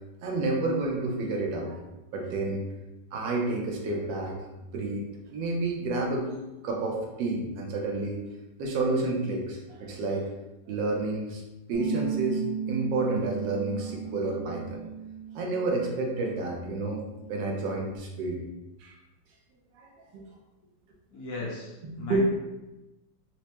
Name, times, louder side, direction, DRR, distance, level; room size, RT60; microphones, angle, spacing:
voice 1, 0.2-1.8 2.1-2.7 3.1-6.3 6.6-8.2 8.6-10.3 10.7-11.4 11.7-12.4 12.7-14.8 15.3-18.5 18.8-19.0 19.8-20.2 21.8-22.2, right 2 dB, 80° right, -1 dB, 1.4 m, -30 dB
Bass guitar, 11.7-18.0, right 7 dB, 90° left, 1.5 m, -36 dB
voice 2, 21.1-22.2, left 3 dB, 60° left, -3 dB, 1.2 m, -37 dB
4.4 x 2.1 x 2.9 m, 1.0 s
omnidirectional pair, 2.0 m